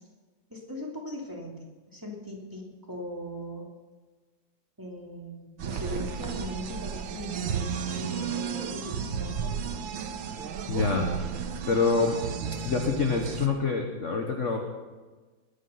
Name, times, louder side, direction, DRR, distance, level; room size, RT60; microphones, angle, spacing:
voice 1, 0.5-3.7 4.8-9.7, left 1 dB, 10° right, -2 dB, 2.7 m, -39 dB
sound 1, 5.6-13.5, right 7 dB, 70° right, 1.7 m, -33 dB
voice 2, 10.7-11.1 11.7-12.2 12.5-14.6, left 4 dB, 40° left, 3 dB, 1.3 m, -26 dB
20.0 x 9.5 x 5.8 m, 1.3 s
omnidirectional pair, 2.3 m